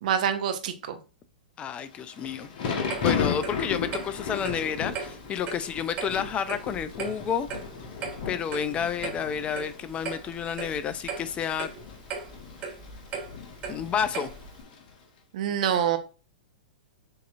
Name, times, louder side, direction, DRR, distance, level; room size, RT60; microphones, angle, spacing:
voice 1, 0.0-1.0 15.3-16.0, right 9 dB, 55° right, 0.8 m, -26 dB
voice 2, 1.6-7.5 8.3-11.7 13.7-14.3, left 7 dB, 25° left, 0.4 m, -30 dB
Thunder / Rain, 1.9-14.9, left 6 dB, 55° left, 1.2 m, -35 dB
Clock, 2.9-14.6, right 5 dB, 30° right, 1.2 m, -38 dB
6.4 x 2.9 x 2.5 m
figure-of-eight pair, 110°, 5 cm